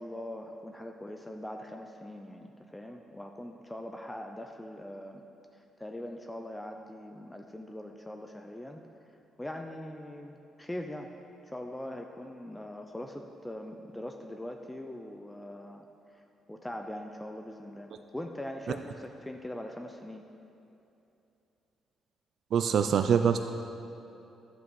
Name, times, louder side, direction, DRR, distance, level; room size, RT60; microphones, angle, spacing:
voice 1, 0.0-5.2 5.5-8.8 9.4-11.1 11.5-16.2 16.5-20.3, left 1 dB, 10° left, 4 dB, 0.6 m, -42 dB
voice 2, 22.5-23.4, right 7 dB, 65° right, 7 dB, 0.4 m, -24 dB
11.0 x 7.8 x 4.8 m, 2.8 s
cardioid pair, 90°, 0 cm